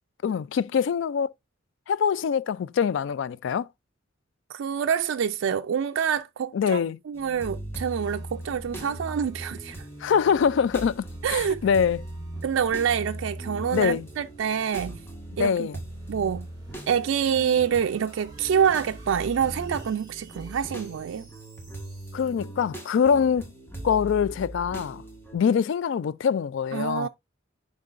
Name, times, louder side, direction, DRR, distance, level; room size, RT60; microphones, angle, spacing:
voice 1, 0.2-1.3 1.9-3.7 6.5-7.0 10.0-12.0 13.7-14.1 15.4-15.8 22.1-23.5 23.8-25.0 25.3-27.1, left 7 dB, 70° left, 0.3 m, -24 dB
voice 2, 4.5-9.9 11.2-11.6 12.4-15.0 15.4-15.7 16.1-16.5 16.9-21.3 26.7-27.1, right 7 dB, 80° right, 0.3 m, -26 dB
sound 1, 7.1-25.4, right 1 dB, 10° left, 1.6 m, -39 dB
sound 2, 7.7-22.7, right 2 dB, 20° right, 3.0 m, -55 dB
10.5 x 3.8 x 2.5 m
head